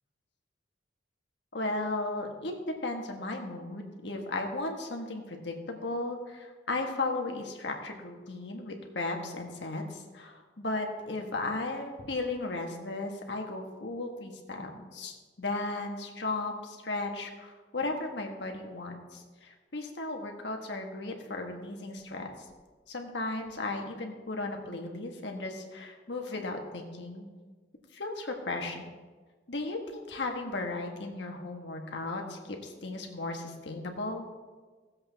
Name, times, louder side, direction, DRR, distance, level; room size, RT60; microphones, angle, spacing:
voice 1, 1.5-2.6 2.8-22.3 22.9-27.3 27.9-28.9 29.5-34.2, left 2 dB, 70° left, 2 dB, 1.5 m, -35 dB
17.0 x 7.6 x 3.5 m, 1.4 s
head